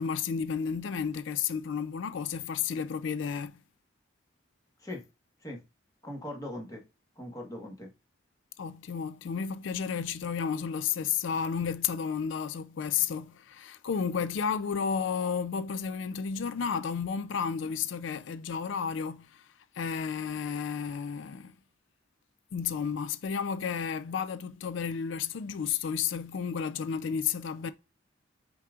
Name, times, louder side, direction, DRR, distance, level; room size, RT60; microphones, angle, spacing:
voice 1, 0.0-3.6 8.6-19.5 19.8-21.5 22.5-27.7, left 6 dB, 75° left, 0.4 m, -32 dB
voice 2, 6.0-6.8 7.2-7.9, left 1 dB, 20° left, 1.2 m, -40 dB
5.5 x 3.8 x 2.4 m
head